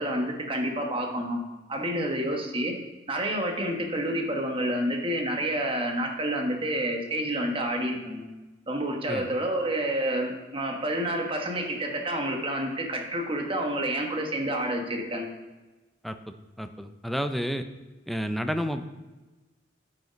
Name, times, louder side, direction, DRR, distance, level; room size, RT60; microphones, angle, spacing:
voice 1, 0.0-1.4 1.7-2.8 3.1-8.3 8.7-15.3, right 1 dB, 30° right, 2 dB, 1.2 m, -29 dB
voice 2, 16.0-17.7 18.1-18.9, equal, ahead, 8 dB, 0.4 m, -31 dB
9.4 x 5.0 x 5.1 m, 1.1 s
head